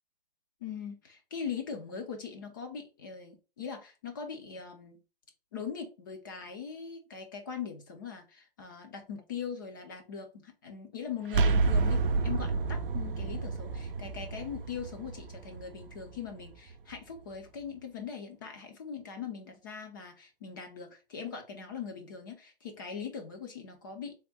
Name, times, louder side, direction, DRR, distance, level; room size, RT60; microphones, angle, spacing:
voice 1, 0.6-5.0 5.5-24.1, left 6 dB, 20° left, 0.4 m, -41 dB
sound 1, 11.3-17.0, right 3 dB, 65° right, 0.5 m, -30 dB
3.4 x 2.1 x 4.0 m
hypercardioid pair, 160°, 29 cm